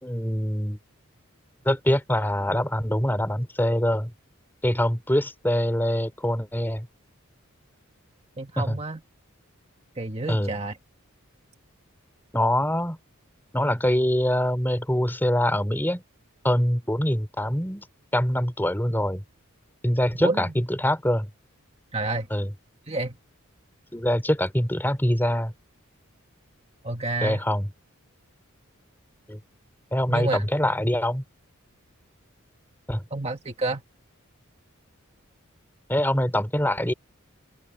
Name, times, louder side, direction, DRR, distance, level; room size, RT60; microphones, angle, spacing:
voice 1, 0.0-0.8 1.7-4.1 4.6-6.9 8.6-8.8 10.3-10.5 12.3-13.0 13.5-16.0 16.4-17.9 18.1-19.2 19.8-21.3 22.3-22.5 23.9-25.5 27.2-27.7 29.3-29.4 29.9-31.2 32.9-33.0 35.9-36.9, left 1 dB, 10° left, 3.6 m, -24 dB
voice 2, 8.4-9.0 10.0-10.8 20.2-20.5 21.9-22.3 22.9-23.2 26.8-27.4 30.1-30.5 33.1-33.8, right 2 dB, 30° right, 1.6 m, -29 dB
open air
head